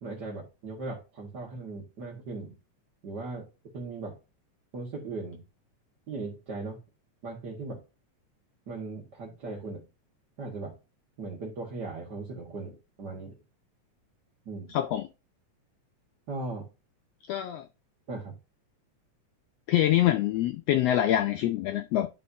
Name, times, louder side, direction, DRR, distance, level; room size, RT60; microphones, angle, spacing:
voice 1, 0.0-2.6 3.0-3.5 3.7-4.2 4.7-5.4 6.1-6.8 7.2-7.8 8.7-9.8 10.4-10.8 11.2-13.4 14.5-14.7 16.3-16.7 18.1-18.4, right 3 dB, 40° right, 1.8 m, -38 dB
voice 2, 14.7-15.1 17.3-17.6 19.7-22.1, left 12 dB, 80° left, 1.4 m, -25 dB
11.0 x 5.3 x 2.7 m
omnidirectional pair, 3.4 m